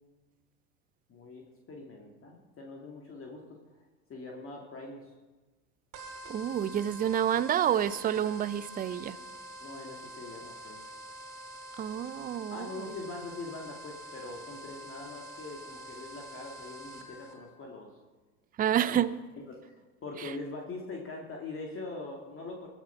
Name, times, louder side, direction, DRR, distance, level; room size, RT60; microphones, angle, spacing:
voice 1, 1.1-3.6 4.1-5.1 9.6-10.9 12.5-17.9 18.8-19.0 19.4-22.7, left 3 dB, 30° left, 2.3 m, -43 dB
sound 1, 5.9-17.3, equal, 45° right, 2.5 m, -46 dB
voice 2, 6.3-9.2 11.8-12.7 18.6-19.1, right 10 dB, 20° right, 0.6 m, -28 dB
21.5 x 7.3 x 5.6 m
hypercardioid pair, 85°, 44 cm